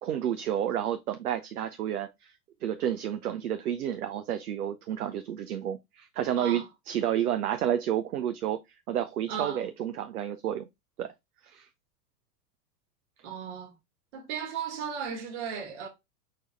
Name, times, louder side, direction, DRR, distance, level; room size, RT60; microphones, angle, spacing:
voice 1, 0.0-2.3 2.6-8.6 8.9-10.6 11.0-11.1 11.4-11.7, right 10 dB, 65° right, 0.7 m, -30 dB
voice 2, 6.3-6.7 9.3-9.6 13.2-13.7 14.1-15.9, right 7 dB, 40° right, 1.7 m, -35 dB
5.3 x 4.3 x 2.3 m
figure-of-eight pair, 95°, 49 cm